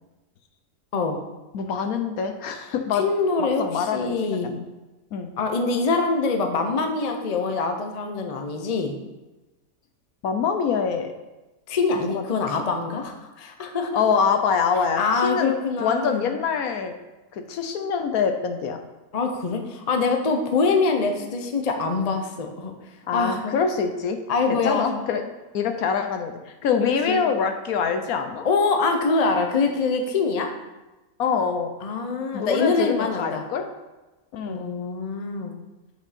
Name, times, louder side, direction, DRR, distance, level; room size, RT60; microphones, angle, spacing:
voice 1, 1.5-3.0 3.4-4.6 5.1-5.3 10.2-11.1 12.0-12.6 13.9-15.5 15.8-16.9 17.3-18.8 23.1-24.2 24.5-25.2 25.5-28.5 31.2-31.7 32.3-33.7 34.3-34.6, left 6 dB, 70° left, 7 dB, 1.1 m, -25 dB
voice 2, 2.9-4.6 5.4-9.0 11.7-14.0 15.0-16.3 19.1-22.7 23.1-23.6 24.3-25.0 26.8-27.2 28.4-30.5 31.8-33.5 34.4-35.5, left 4 dB, 40° left, 4 dB, 0.6 m, -24 dB
8.1 x 5.2 x 4.2 m, 1.1 s
omnidirectional pair, 1.7 m